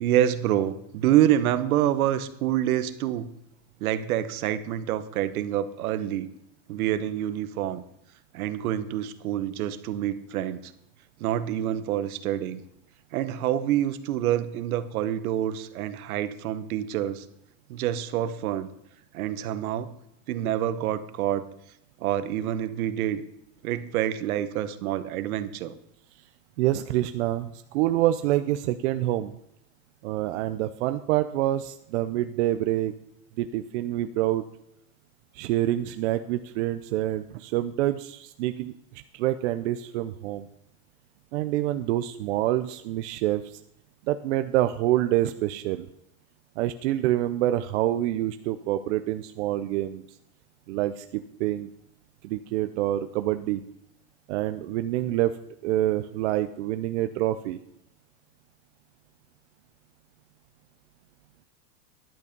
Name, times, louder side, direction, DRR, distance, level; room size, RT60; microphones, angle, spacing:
voice 1, 0.0-3.3 3.8-6.3 6.7-7.8 8.3-10.7 11.2-12.6 13.1-17.3 17.7-18.7 19.1-19.9 20.3-21.5 22.0-23.2 23.6-25.7, right 11 dB, 65° right, 13 dB, 1.1 m, -27 dB
voice 2, 26.6-29.3 30.0-32.9 33.4-34.4 35.3-38.7 39.1-40.5 41.3-43.6 44.1-45.9 46.6-50.0 50.7-51.7 52.2-53.6 54.3-55.3 55.6-57.6, right 14 dB, 50° right, 9 dB, 0.6 m, -26 dB
11.0 x 8.3 x 5.3 m, 0.77 s
supercardioid pair, 150°, 46 cm